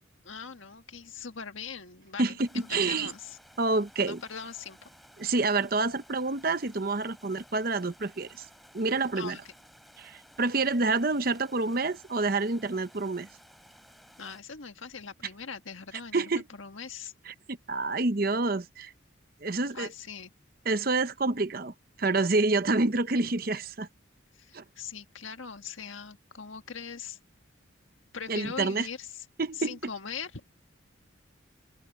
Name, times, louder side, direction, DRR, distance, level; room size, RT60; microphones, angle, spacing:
voice 1, 0.2-3.4 4.0-4.9 9.1-9.4 14.2-17.1 19.7-20.3 24.3-27.2 28.1-29.2 29.5-30.4, left 6 dB, 85° left, 1.6 m, -41 dB
voice 2, 2.2-3.1 3.6-4.2 5.2-8.4 8.7-9.4 10.0-13.3 16.1-16.4 17.3-18.9 19.4-19.9 20.6-21.7 22.0-23.9 24.5-24.6 28.3-28.9 29.4-29.8, right 3 dB, 50° right, 0.9 m, -28 dB
sound 1, 2.4-14.4, equal, ahead, 6.0 m, -57 dB
open air
head